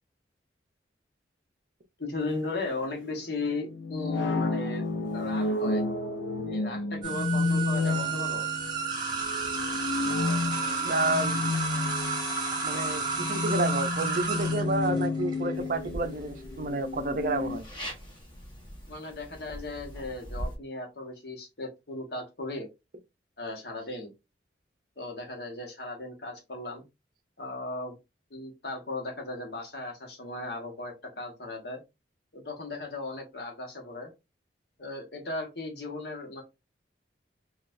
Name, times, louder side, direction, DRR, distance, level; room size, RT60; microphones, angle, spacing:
voice 1, 2.0-4.8 5.1-5.8 6.4-8.4 18.9-22.7 23.4-24.1 25.0-26.8 27.4-28.0 28.3-31.8 32.3-34.1 34.8-36.4, left 2 dB, 60° left, 1.2 m, -36 dB
sound 1, 2.2-17.6, left 3 dB, 80° left, 0.7 m, -31 dB
sound 2, 7.0-16.0, right 5 dB, 25° right, 0.9 m, -32 dB
voice 2, 10.8-11.4 12.6-17.6, right 2 dB, 50° right, 0.5 m, -30 dB
sound 3, 15.5-20.6, equal, 25° left, 1.0 m, -42 dB
4.0 x 2.4 x 2.5 m
head